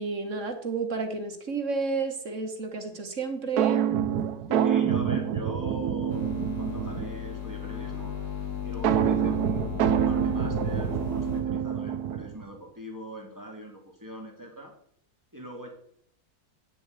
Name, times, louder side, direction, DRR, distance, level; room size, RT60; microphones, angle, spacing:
voice 1, 0.0-3.8, right 4 dB, 50° right, 6 dB, 1.8 m, -31 dB
sound 1, 3.6-7.3 8.8-12.4, right 9 dB, 75° right, 1.3 m, -26 dB
voice 2, 4.5-8.1 8.6-14.7 15.3-15.7, right 1 dB, 10° right, 1 dB, 2.4 m, -41 dB
sound 2, 6.1-11.4, left 8 dB, 80° left, 2.4 m, -35 dB
8.9 x 7.6 x 8.2 m, 0.67 s
omnidirectional pair, 1.7 m